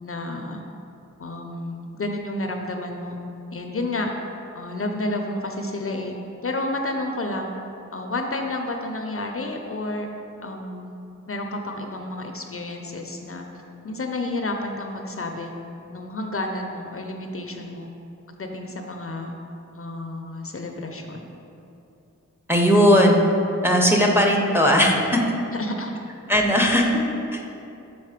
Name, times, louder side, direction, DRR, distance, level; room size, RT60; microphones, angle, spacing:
voice 1, 0.0-0.6 1.2-3.2 3.5-4.1 4.5-6.2 6.4-7.5 7.9-10.1 10.4-11.0 11.3-13.5 13.8-15.5 15.9-17.9 18.3-19.3 19.7-21.3 25.5-25.9, left 2 dB, 50° left, 3 dB, 0.5 m, -30 dB
voice 2, 22.5-23.3 23.6-25.2 26.3-27.0 27.3-27.4, equal, 5° right, 0 dB, 0.7 m, -18 dB
6.5 x 4.1 x 4.9 m, 2.8 s
wide cardioid pair, 85°, 30 cm